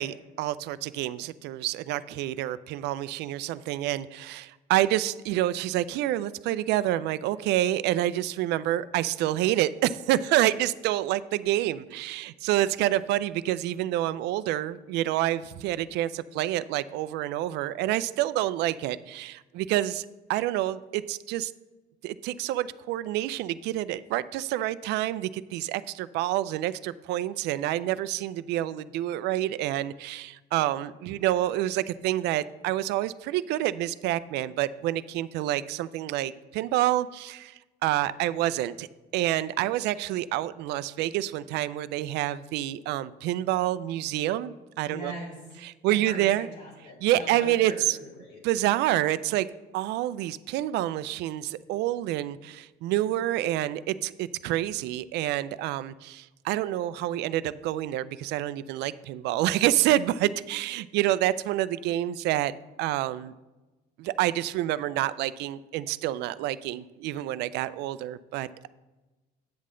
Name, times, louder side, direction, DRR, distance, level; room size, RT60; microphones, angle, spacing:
voice 1, 0.0-21.5 22.0-37.5 37.8-38.9 39.1-45.1 45.6-46.5 47.0-48.0 48.4-49.5 49.7-62.5 62.8-63.3 64.0-68.7, right 14 dB, 85° right, 16 dB, 0.4 m, -28 dB
voice 2, 44.8-45.4 45.9-48.4, equal, 90° left, -2 dB, 3.2 m, -41 dB
9.4 x 7.5 x 3.7 m, 1.1 s
cardioid pair, 110°, 17 cm